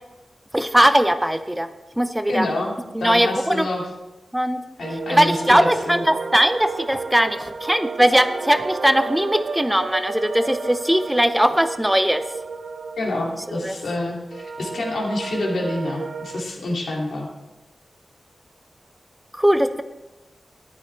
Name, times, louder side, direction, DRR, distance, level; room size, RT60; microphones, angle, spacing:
voice 1, 0.5-1.7 2.0-2.5 2.9-3.7 4.3-4.6 5.1-12.2 13.6-13.8 19.4-19.8, equal, 5° right, 9 dB, 0.5 m, -19 dB
voice 2, 2.3-2.7 3.0-3.8 4.8-6.0 13.0-17.3, left 1 dB, 85° left, -1 dB, 2.5 m, -27 dB
sound 1, 4.8-16.4, right 4 dB, 75° right, 0.6 m, -33 dB
14.5 x 10.5 x 3.3 m, 1.1 s
wide cardioid pair, 165°, 0 cm